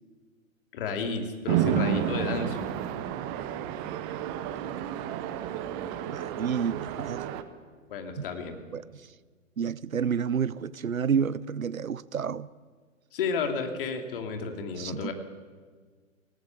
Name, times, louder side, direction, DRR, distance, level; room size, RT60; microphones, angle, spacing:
voice 1, 0.7-2.6 7.9-8.5 13.1-15.1, left 5 dB, 40° left, 2.9 m, -32 dB
Chatter / Traffic noise roadway noise / Train, 1.5-7.4, right 9 dB, 20° right, 0.8 m, -31 dB
voice 2, 6.1-7.2 8.2-8.3 8.7-8.8 9.6-12.5 14.8-15.1, right 7 dB, 80° right, 0.8 m, -29 dB
18.0 x 18.0 x 8.5 m
figure-of-eight pair, 120°, 41 cm